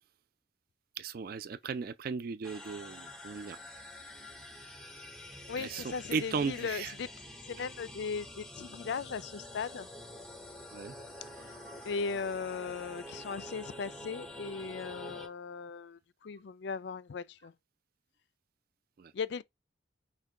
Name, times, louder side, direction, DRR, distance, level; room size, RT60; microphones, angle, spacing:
voice 1, 1.0-3.6 5.6-6.9 10.7-10.9 11.7-11.8 19.0-19.1, right 5 dB, 50° right, 0.3 m, -36 dB
sound 1, 2.4-15.3, left 1 dB, ahead, 0.6 m, -47 dB
voice 2, 5.5-7.1 7.5-9.9 11.4-11.5 11.9-17.5 19.1-19.4, left 5 dB, 60° left, 0.4 m, -38 dB
5.8 x 2.3 x 3.6 m
head